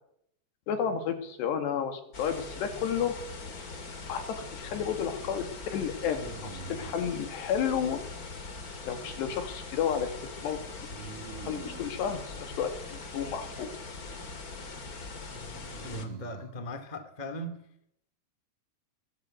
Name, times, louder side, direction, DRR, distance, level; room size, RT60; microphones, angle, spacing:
voice 1, 0.7-3.2 4.1-8.0 8.9-10.1 10.4-10.9 11.5-13.7, left 7 dB, 70° left, 8 dB, 4.1 m, -32 dB
sound 1, 2.1-16.0, left 3 dB, 35° left, 1.5 m, -42 dB
sound 2, 3.4-4.1 6.2-7.1 10.9-12.0 15.3-16.6, right 6 dB, 45° right, 2.1 m, -46 dB
voice 2, 15.8-17.6, equal, 15° left, 7 dB, 1.8 m, -39 dB
23.0 x 18.0 x 7.9 m, 0.74 s
omnidirectional pair, 5.3 m